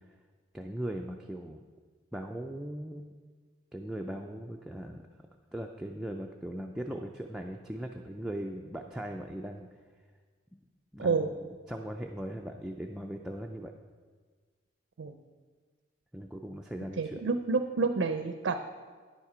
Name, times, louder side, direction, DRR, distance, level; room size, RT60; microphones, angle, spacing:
voice 1, 0.5-1.6 2.1-3.1 3.7-5.0 5.5-9.7 10.5-10.6 10.9-11.4 11.7-13.7 16.1-17.2, right 1 dB, 5° right, 1 dB, 0.3 m, -39 dB
voice 2, 11.0-11.3 15.0-15.2 17.0-18.6, right 4 dB, 70° right, 8 dB, 0.5 m, -29 dB
10.0 x 7.2 x 4.9 m, 1.5 s
head